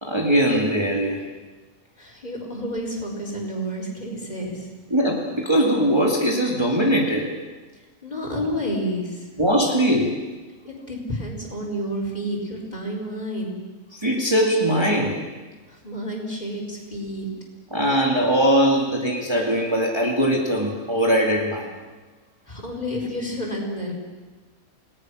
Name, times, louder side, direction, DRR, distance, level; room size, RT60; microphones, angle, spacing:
voice 1, 0.0-1.2 4.9-7.3 9.4-10.2 14.0-15.2 17.7-21.7, equal, 20° right, -1 dB, 2.4 m, -21 dB
voice 2, 2.0-4.7 8.0-9.3 10.6-13.6 15.7-17.3 22.5-23.9, equal, 30° left, -1 dB, 5.0 m, -30 dB
29.0 x 19.0 x 6.4 m, 1.3 s
omnidirectional pair, 1.5 m